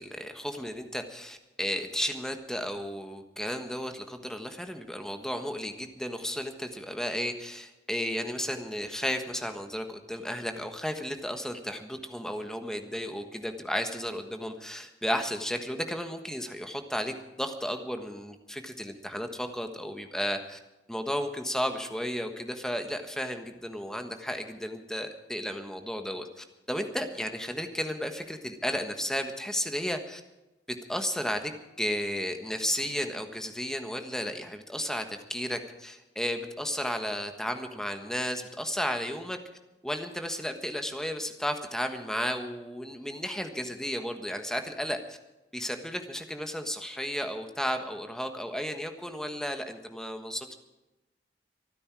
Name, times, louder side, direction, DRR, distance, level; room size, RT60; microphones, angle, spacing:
voice 1, 0.0-20.6 20.9-30.2 30.9-31.5 31.8-39.4 39.8-45.2 45.5-50.5, equal, 5° left, 6 dB, 1.4 m, -33 dB
25.5 x 9.9 x 4.8 m, 1.0 s
head